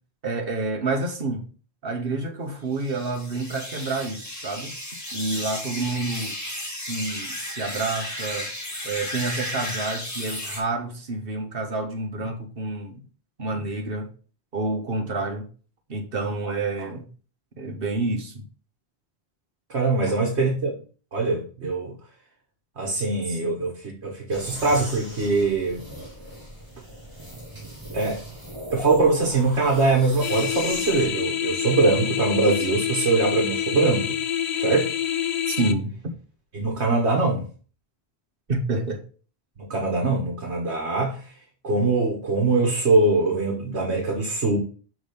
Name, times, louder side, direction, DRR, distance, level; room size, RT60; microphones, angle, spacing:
voice 1, 0.2-1.5 1.8-4.7 5.1-8.5 8.8-13.0 13.4-14.1 14.5-15.5 15.9-17.1 17.6-18.4 20.0-20.1 23.3-23.6 35.5-35.9 38.5-39.0, right 3 dB, 60° right, 1.4 m, -29 dB
sound 1, 2.7-10.6, left 1 dB, 15° left, 1.8 m, -34 dB
voice 2, 19.7-20.8 21.1-21.9 22.8-25.8 27.9-28.2 28.7-34.2 34.6-34.9 36.5-37.4 39.6-41.3 41.6-44.6, right 3 dB, 80° right, 1.6 m, -22 dB
sound 2, 24.3-31.1, right 1 dB, 20° right, 3.6 m, -39 dB
sound 3, 30.2-35.7, left 9 dB, 50° left, 0.5 m, -27 dB
6.2 x 3.7 x 5.1 m
omnidirectional pair, 1.1 m